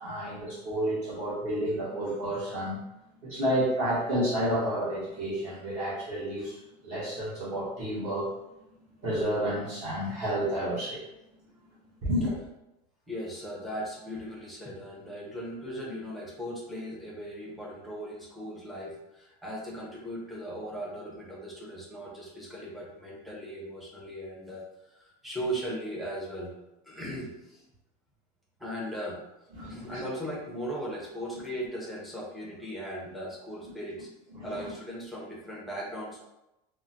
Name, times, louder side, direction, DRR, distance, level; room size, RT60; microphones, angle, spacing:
voice 1, 0.0-2.8 3.2-6.6 6.8-8.3 9.0-11.0 12.0-12.3 29.5-30.0 34.3-34.7, right 1 dB, 35° right, -9 dB, 1.1 m, -30 dB
voice 2, 13.1-24.6 24.9-26.5 26.8-27.6 28.6-29.2 29.7-34.1 34.4-36.2, equal, ahead, -5 dB, 0.6 m, -38 dB
3.6 x 2.1 x 2.7 m, 0.92 s
cardioid pair, 170°, 21 cm